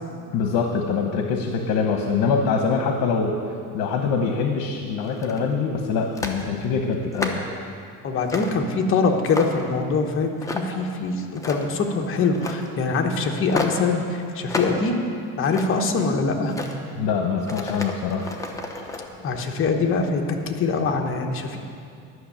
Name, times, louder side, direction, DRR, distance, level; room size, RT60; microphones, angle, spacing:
voice 1, 0.3-3.4 3.7-7.4 17.0-18.3, left 5 dB, 70° left, 3 dB, 1.1 m, -24 dB
sound 1, 5.0-5.5 6.1-6.4 6.9-7.5 8.3-8.6 9.0-9.7 10.4-10.9 11.2-11.8 12.3-12.7 13.5-13.9 14.5-14.8 15.2-15.9 16.4-16.8 17.4-19.1, left 2 dB, 10° left, 0.8 m, -31 dB
voice 2, 8.0-15.0 15.4-16.5 19.2-21.6, left 4 dB, 40° left, 3 dB, 1.1 m, -23 dB
11.0 x 6.4 x 8.7 m, 2.4 s
cardioid pair, 140°, 34 cm